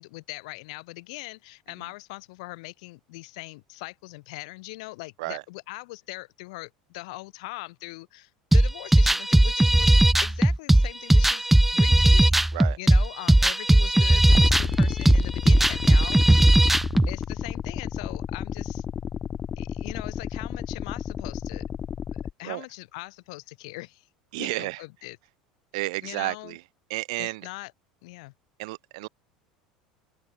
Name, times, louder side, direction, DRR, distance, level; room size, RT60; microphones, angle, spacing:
voice 1, 0.0-12.4 12.8-16.5 17.1-18.8 19.6-21.7 22.1-24.1 24.4-25.2 26.0-26.6 27.2-27.7 28.0-28.3, left 24 dB, 65° left, 4.1 m, -41 dB
sound 1, 8.5-17.1, right 1 dB, 5° right, 0.6 m, -18 dB
sound 2, 14.3-22.3, left 8 dB, 35° left, 1.6 m, -32 dB
voice 2, 24.3-24.8 25.7-26.6 26.9-27.5 28.6-29.1, right 23 dB, 65° right, 7.0 m, -31 dB
open air
figure-of-eight pair, 75°, 4 cm